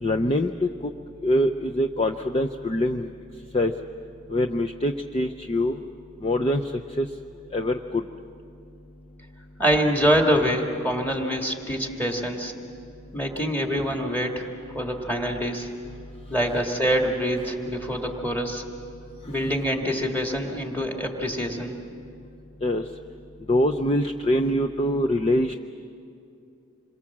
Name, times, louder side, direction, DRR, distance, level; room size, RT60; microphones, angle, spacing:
voice 1, 0.0-0.9 1.2-3.1 3.5-3.7 4.3-5.8 6.2-6.7 7.0-7.1 7.5-8.0 19.4-19.5 22.6-22.8 23.5-25.5, left 1 dB, 25° left, 5 dB, 0.5 m, -24 dB
voice 2, 9.6-12.5 13.1-14.5 14.7-15.7 16.3-18.6 19.3-21.8, equal, 10° left, 1 dB, 2.0 m, -25 dB
27.5 x 23.0 x 7.4 m, 2.6 s
head